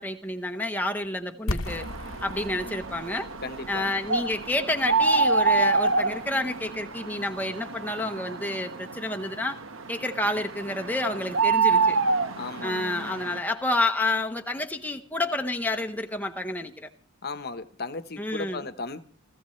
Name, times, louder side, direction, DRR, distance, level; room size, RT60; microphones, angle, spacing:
voice 1, 0.0-1.9 2.2-3.3 3.7-9.6 9.9-12.0 12.6-16.9 18.2-18.6, left 2 dB, 10° left, 0.9 m, -29 dB
sound 1, 1.5-7.2, left 2 dB, 85° left, 1.0 m, -38 dB
sound 2, 1.7-13.4, right 4 dB, 70° right, 1.2 m, -27 dB
voice 2, 2.5-2.8 3.4-3.9 12.4-13.2 17.2-19.0, left 3 dB, 50° left, 1.0 m, -36 dB
29.5 x 14.5 x 3.2 m
head